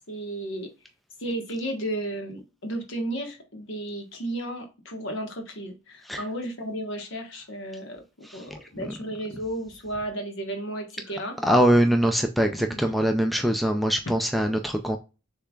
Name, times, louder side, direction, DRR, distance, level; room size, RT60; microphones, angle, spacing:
voice 1, 0.1-0.7 1.2-11.4 12.7-12.8, right 1 dB, 60° left, 4 dB, 1.3 m, -33 dB
voice 2, 11.4-15.0, equal, ahead, 4 dB, 0.4 m, -22 dB
6.8 x 3.4 x 2.3 m, 0.30 s
head